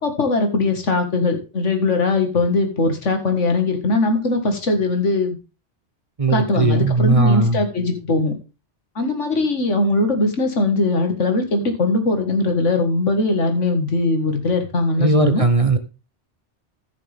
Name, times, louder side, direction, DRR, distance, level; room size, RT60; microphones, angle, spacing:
voice 1, 0.0-5.4 6.3-8.3 9.0-15.4, left 2 dB, 85° left, 2.2 m, -20 dB
voice 2, 6.2-7.6 15.0-15.8, right 3 dB, 30° right, 0.9 m, -17 dB
15.0 x 6.6 x 3.5 m
omnidirectional pair, 1.2 m